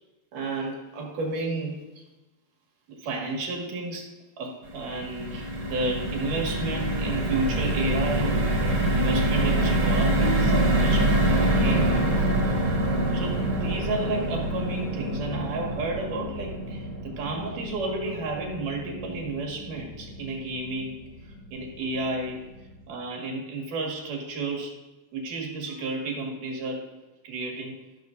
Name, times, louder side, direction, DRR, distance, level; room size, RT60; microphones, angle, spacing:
voice 1, 0.3-2.0 2.9-8.4 8.9-12.4 13.1-21.0 21.2-22.5 22.9-24.8 25.1-26.9 27.2-27.8, right 2 dB, 80° right, 0 dB, 3.4 m, -32 dB
sound 1, 4.6-20.9 21.3-21.5 21.7-22.0, right 1 dB, 55° right, 2.6 m, -26 dB
18.0 x 7.3 x 2.6 m, 1.1 s
omnidirectional pair, 3.6 m